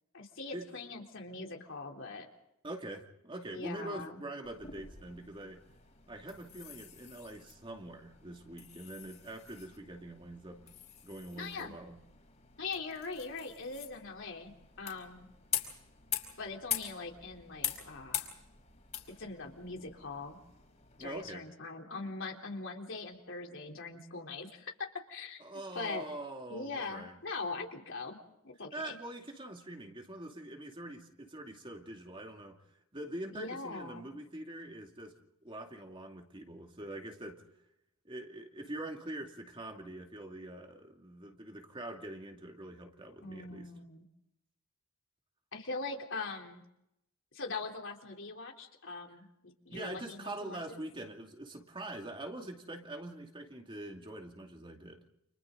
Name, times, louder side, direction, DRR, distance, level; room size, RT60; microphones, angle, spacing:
voice 1, 0.1-2.3 3.5-4.2 11.4-11.7 12.6-15.3 16.4-18.3 19.2-20.4 21.0-24.7 25.1-25.4 25.7-26.1 26.5-28.2 28.4-29.0 33.3-34.1 43.2-44.0 45.5-46.6 47.3-50.8, left 3 dB, 65° left, 2 dB, 3.7 m, -42 dB
voice 2, 2.6-5.6 6.1-10.6 11.0-12.0 21.0-21.4 25.4-27.2 28.7-32.6 32.9-35.1 35.4-37.4 38.0-43.7 49.7-55.0, right 1 dB, 25° right, 2 dB, 2.5 m, -44 dB
sound 1, 4.4-21.3, left 9 dB, 35° left, 4.9 m, -44 dB
30.0 x 28.5 x 4.0 m, 0.83 s
head